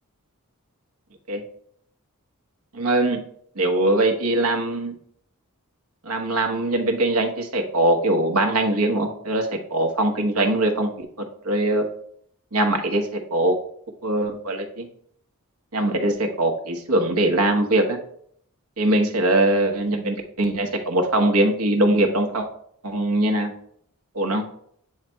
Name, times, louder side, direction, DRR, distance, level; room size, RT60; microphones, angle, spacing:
voice 1, 2.7-3.2 3.6-4.9 6.0-11.1 11.4-11.8 12.5-13.6 14.0-14.9 15.7-18.0 18.8-22.5 22.8-23.5 24.1-24.4, right 1 dB, 75° right, 5 dB, 1.2 m, -22 dB
8.5 x 3.2 x 4.6 m, 0.65 s
head